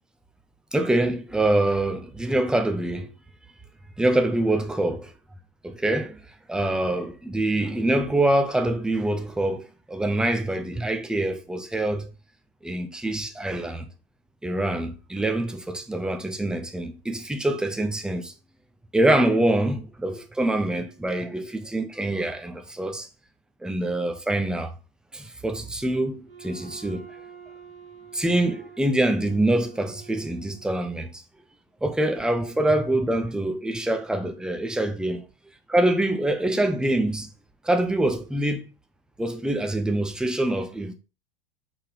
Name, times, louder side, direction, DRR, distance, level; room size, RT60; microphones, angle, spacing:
voice 1, 0.7-3.1 4.0-5.1 5.6-6.2 6.5-12.1 12.6-13.9 14.4-18.3 18.9-23.1 23.6-24.7 25.1-27.1 28.1-31.2 31.8-35.2 35.7-37.3 37.6-38.7 39.2-40.9, right 1 dB, 5° right, 1.0 m, -25 dB
Wind instrument woodwind instrument, 26.3-31.0, right 7 dB, 85° right, 1.7 m, -47 dB
6.0 x 4.4 x 5.0 m
figure-of-eight pair, 90°, 29 cm